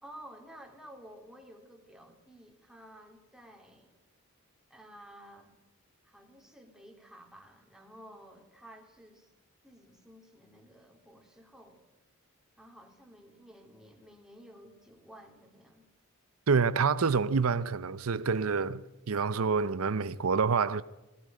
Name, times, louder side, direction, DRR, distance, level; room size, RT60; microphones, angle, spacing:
voice 1, 0.0-3.9 4.7-5.6 6.0-9.3 9.6-11.8 12.6-15.9, equal, 5° right, 3.0 m, -53 dB
voice 2, 16.5-20.8, right 5 dB, 90° right, 0.6 m, -27 dB
19.5 x 16.0 x 9.1 m
head